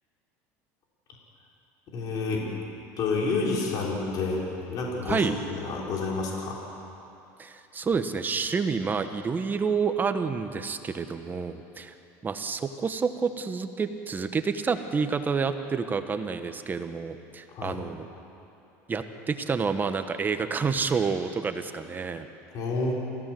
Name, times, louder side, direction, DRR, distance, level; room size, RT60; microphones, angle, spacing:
voice 1, 1.9-2.5 3.0-6.6 17.5-17.8 22.5-22.9, left 3 dB, 55° left, -2 dB, 4.6 m, -29 dB
voice 2, 7.4-11.9 12.2-18.1 18.9-22.3, right 5 dB, 25° right, 9 dB, 1.2 m, -29 dB
29.0 x 15.5 x 7.7 m, 2.8 s
supercardioid pair, 110°, 8 cm